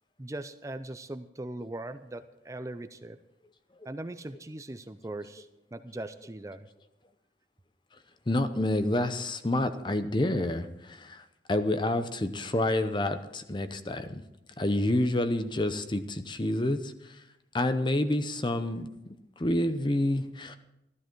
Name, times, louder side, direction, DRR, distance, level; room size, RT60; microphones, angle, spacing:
voice 1, 0.2-3.2 3.9-6.7, right 1 dB, 15° right, 9 dB, 0.4 m, -40 dB
voice 2, 8.3-14.2 14.6-17.2 17.5-18.9 19.4-20.6, left 1 dB, 25° left, 10 dB, 0.7 m, -28 dB
14.0 x 13.0 x 4.6 m, 0.89 s
head